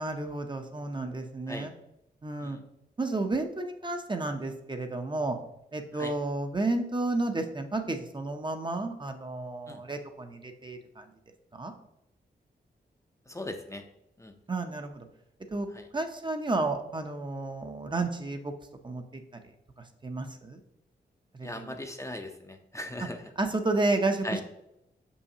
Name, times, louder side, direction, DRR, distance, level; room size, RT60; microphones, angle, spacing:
voice 1, 0.0-1.7 2.2-2.6 3.0-5.4 5.7-11.0 11.5-11.7 14.5-15.1 15.5-15.7 15.9-18.5 18.8-19.2 20.0-20.6 21.3-21.8 23.4-24.4, right 2 dB, 25° right, 5 dB, 0.6 m, -31 dB
voice 2, 13.3-13.8 14.2-14.3 15.7-15.8 21.4-23.2 24.2-24.4, left 1 dB, 15° left, 5 dB, 0.5 m, -38 dB
6.2 x 5.5 x 2.8 m, 0.83 s
wide cardioid pair, 90°, 18 cm